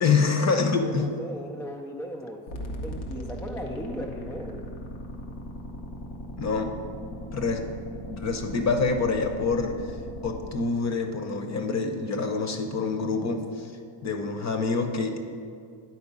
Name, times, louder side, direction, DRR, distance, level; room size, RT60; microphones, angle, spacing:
voice 1, 0.0-1.1 6.4-6.7 7.3-7.7 8.1-10.0 10.2-13.7 14.0-15.3, left 4 dB, 35° left, 5 dB, 0.8 m, -26 dB
voice 2, 0.8-2.5 2.8-4.7, equal, 5° left, 1 dB, 0.3 m, -37 dB
sound 1, 2.5-10.5, equal, 90° left, 1.2 m, -38 dB
9.7 x 4.2 x 5.4 m, 2.4 s
cardioid pair, 110°, 49 cm